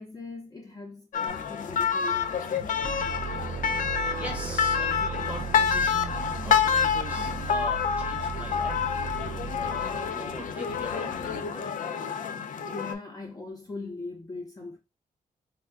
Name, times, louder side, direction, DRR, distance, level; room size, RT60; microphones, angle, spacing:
voice 1, 0.0-3.0 12.7-14.8, left 3 dB, 25° left, 0.7 m, -40 dB
sound 1, 1.1-12.9, left 7 dB, 70° left, 0.4 m, -28 dB
sound 2, 1.3-11.6, left 4 dB, 85° left, 0.8 m, -47 dB
sound 3, 2.8-10.3, right 7 dB, 30° right, 0.4 m, -37 dB
voice 2, 4.1-6.1 6.4-11.8, right 1 dB, 10° right, 0.9 m, -42 dB
3.5 x 2.2 x 3.3 m
wide cardioid pair, 160°, 14 cm